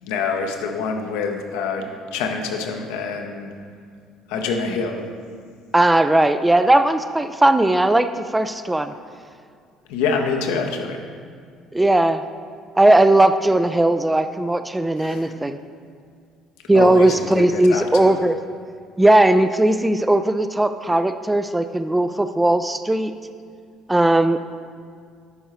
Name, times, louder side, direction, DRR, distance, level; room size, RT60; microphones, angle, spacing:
voice 1, 0.0-3.5 4.3-5.0 9.9-11.0 15.0-15.3 16.7-18.1, left 5 dB, 65° left, 3 dB, 0.7 m, -26 dB
voice 2, 5.7-8.9 11.7-12.2 12.8-15.6 16.7-18.4 19.0-23.1 23.9-24.4, right 1 dB, 10° right, 10 dB, 0.3 m, -17 dB
10.5 x 5.5 x 3.0 m, 2.1 s
figure-of-eight pair, 55°, 0 cm